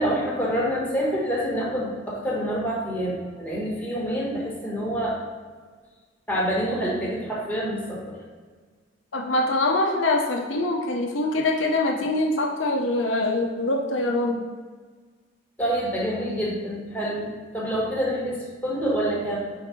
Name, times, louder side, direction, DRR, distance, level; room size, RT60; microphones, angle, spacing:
voice 1, 0.0-5.2 6.3-8.2 15.6-19.4, equal, 10° left, -6 dB, 1.4 m, -27 dB
voice 2, 9.1-14.4, left 2 dB, 80° left, 1 dB, 0.9 m, -24 dB
4.9 x 4.5 x 4.3 m, 1.5 s
head